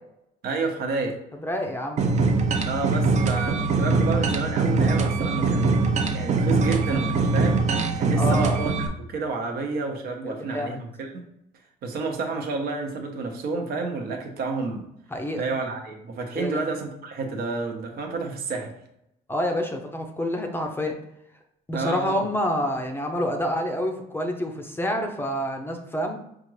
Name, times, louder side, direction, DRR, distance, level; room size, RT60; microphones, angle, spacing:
voice 1, 0.4-1.2 2.7-7.7 8.0-11.2 11.8-14.8 15.4-18.7 21.7-22.2, right 3 dB, 65° right, 2 dB, 0.9 m, -30 dB
voice 2, 1.4-2.0 8.2-8.6 10.2-10.8 15.1-15.5 16.3-16.6 19.3-21.0 21.7-26.2, left 1 dB, 15° left, 3 dB, 0.5 m, -28 dB
sound 1, 2.0-8.9, right 3 dB, 45° right, 0.6 m, -22 dB
5.1 x 2.4 x 3.1 m, 0.79 s
cardioid pair, 110°, 17 cm